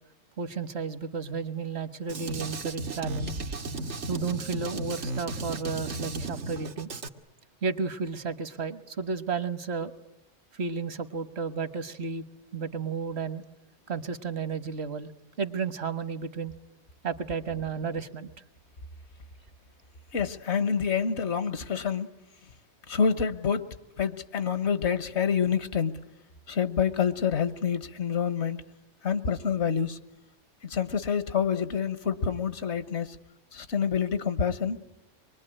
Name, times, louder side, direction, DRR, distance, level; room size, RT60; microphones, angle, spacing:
voice 1, 0.4-3.4 4.1-6.9 7.6-9.9 10.5-12.2 12.5-13.4 13.9-15.1 15.4-16.5 17.0-18.3, right 5 dB, 70° right, 12 dB, 1.5 m, -32 dB
Drum kit, 2.1-7.1, right 2 dB, 90° right, 1.7 m, -35 dB
voice 2, 20.1-22.1 22.9-26.0 26.5-28.6 29.0-30.0 30.6-33.2 33.5-34.8, left 6 dB, 75° left, 13 dB, 1.5 m, -27 dB
25.5 x 22.5 x 10.0 m, 0.92 s
omnidirectional pair, 1.2 m